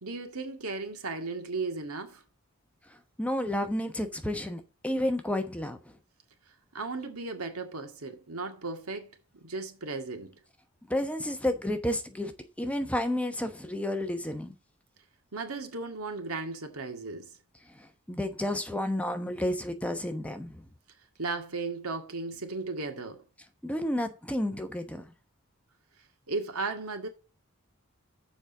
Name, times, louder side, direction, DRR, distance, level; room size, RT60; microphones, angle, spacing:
voice 1, 0.0-2.2 6.7-10.4 15.3-17.3 21.2-23.2 26.3-27.1, right 3 dB, 90° right, 1.9 m, -36 dB
voice 2, 3.2-5.8 10.9-12.3 12.6-14.5 17.7-20.6 23.6-25.0, left 1 dB, 5° left, 0.9 m, -31 dB
7.1 x 5.1 x 7.1 m
head